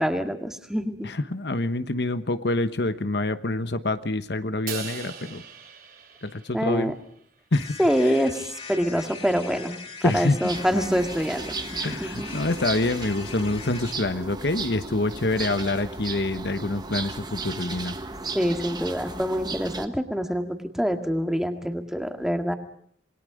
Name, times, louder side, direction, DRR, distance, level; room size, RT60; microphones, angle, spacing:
voice 1, 0.0-1.1 6.5-6.9 7.8-9.8 10.0-12.3 18.4-22.5, equal, 5° right, 6 dB, 2.0 m, -25 dB
voice 2, 1.0-5.4 6.2-6.9 7.5-8.1 10.0-10.4 11.8-18.0, left 2 dB, 65° left, 11 dB, 1.1 m, -26 dB
Crash cymbal, 4.7-7.0, right 7 dB, 55° right, 3.6 m, -39 dB
sound 1, 7.5-14.0, left 4 dB, 35° left, 3.6 m, -41 dB
sound 2, 10.5-19.9, right 3 dB, 25° right, 1.5 m, -35 dB
27.5 x 21.0 x 5.1 m, 0.63 s
head